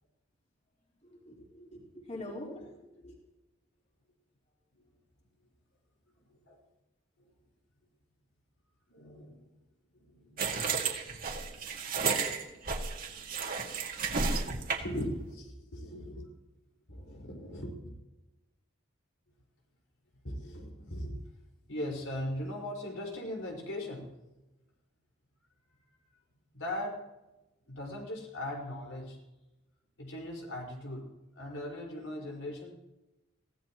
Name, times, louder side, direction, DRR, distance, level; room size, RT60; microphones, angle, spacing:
voice 1, 1.0-3.2, left 1 dB, 35° left, -3 dB, 4.0 m, -44 dB
voice 2, 6.2-6.6 7.2-7.3 8.9-9.4 9.9-10.5 10.9-11.0 14.8-16.3 16.9-17.9 20.2-21.2 21.7-24.1 26.5-27.0 27.7-29.2 30.0-31.0 31.3-32.7, left 1 dB, 85° left, -1 dB, 5.1 m, -39 dB
sound 1, 10.4-15.0, right 5 dB, 45° right, 2.1 m, -32 dB
23.0 x 16.5 x 3.1 m, 1.0 s
head